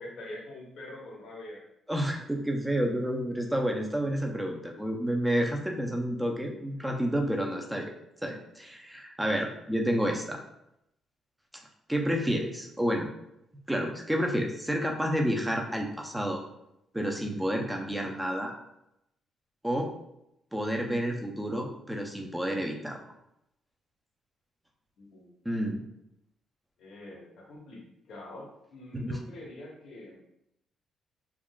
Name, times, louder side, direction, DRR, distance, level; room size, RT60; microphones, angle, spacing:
voice 1, 0.0-1.6 25.0-25.4 26.8-30.2, left 1 dB, 70° left, -2 dB, 1.0 m, -44 dB
voice 2, 1.9-7.9 8.2-10.4 11.9-13.1 13.7-16.4 16.9-18.5 19.6-19.9 20.5-23.0 25.5-25.8 28.9-29.2, equal, 5° right, 1 dB, 0.5 m, -30 dB
3.6 x 2.4 x 2.3 m, 0.82 s
cardioid pair, 90°, 0 cm